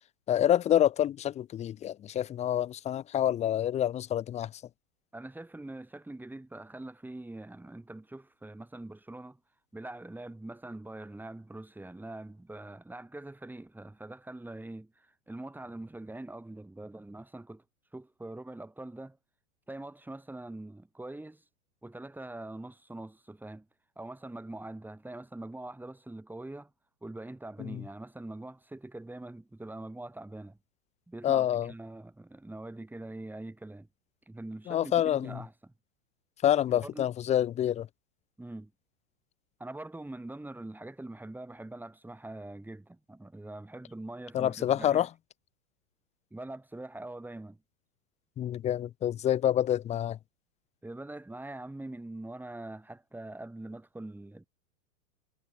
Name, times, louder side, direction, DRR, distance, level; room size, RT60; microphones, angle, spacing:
voice 1, 0.3-4.5 27.6-27.8 31.2-31.7 34.7-35.4 36.4-37.9 44.3-45.1 48.4-50.2, left 11 dB, 15° left, 0.6 m, -27 dB
voice 2, 5.1-9.4 9.7-17.6 17.9-19.2 19.7-21.4 21.8-23.7 24.0-26.7 27.0-30.6 31.1-33.9 34.3-35.7 36.8-37.1 38.4-38.7 39.6-45.1 46.3-47.6 50.8-54.5, right 2 dB, 5° right, 6.9 m, -43 dB
hypercardioid pair, 130°, 41 cm